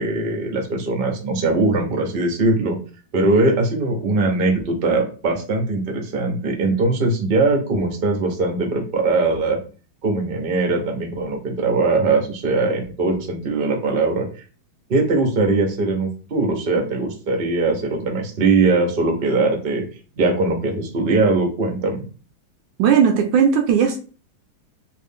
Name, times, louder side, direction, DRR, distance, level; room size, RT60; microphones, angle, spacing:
voice 1, 0.0-2.8 3.1-9.6 10.0-14.3 14.9-19.8 20.2-22.0, right 3 dB, 45° right, 1 dB, 0.7 m, -21 dB
voice 2, 22.8-24.0, right 7 dB, 75° right, 4 dB, 1.2 m, -16 dB
3.2 x 2.6 x 3.5 m, 0.37 s
omnidirectional pair, 2.2 m